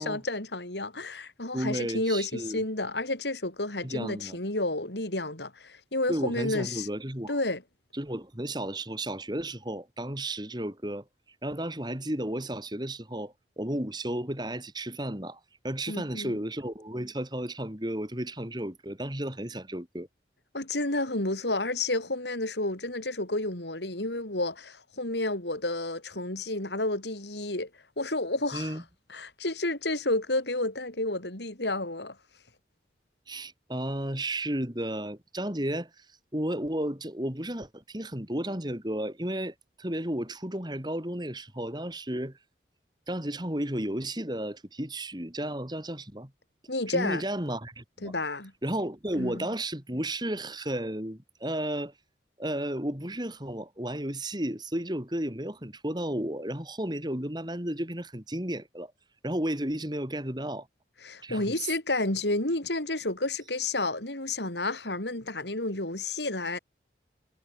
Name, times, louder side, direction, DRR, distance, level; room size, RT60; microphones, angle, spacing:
voice 1, 0.0-6.9 7.3-7.6 15.9-16.4 20.5-27.7 28.0-28.8 29.1-32.2 46.7-47.3 48.0-48.5 49.2-49.5 61.0-66.6, left 2 dB, 80° left, 5.2 m, -31 dB
voice 2, 1.5-2.6 3.8-4.4 6.1-7.4 7.9-11.0 11.4-20.1 28.5-28.8 33.3-36.0 36.3-42.4 43.1-46.3 46.9-48.1 48.6-51.9 52.4-58.9 59.2-60.7 61.2-61.4, right 1 dB, 25° right, 3.2 m, -33 dB
head